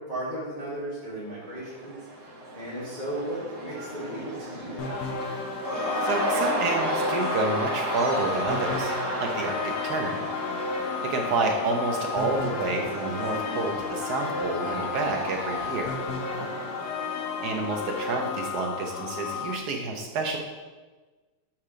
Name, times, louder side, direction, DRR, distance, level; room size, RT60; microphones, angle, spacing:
voice 1, 0.0-2.0 2.5-4.9 9.4-9.5 11.2-11.3 16.3-16.5, right 1 dB, 30° left, -9 dB, 1.1 m, -35 dB
Cheering / Crowd, 1.4-18.3, right 1 dB, 30° right, 1.3 m, -33 dB
sound 1, 4.8-19.6, left 5 dB, 80° left, 0.9 m, -33 dB
voice 2, 6.0-8.9 9.2-10.2 11.0-16.0 17.4-20.4, right 3 dB, 75° right, 2 dB, 0.9 m, -29 dB
4.8 x 4.3 x 4.9 m, 1.3 s
omnidirectional pair, 2.3 m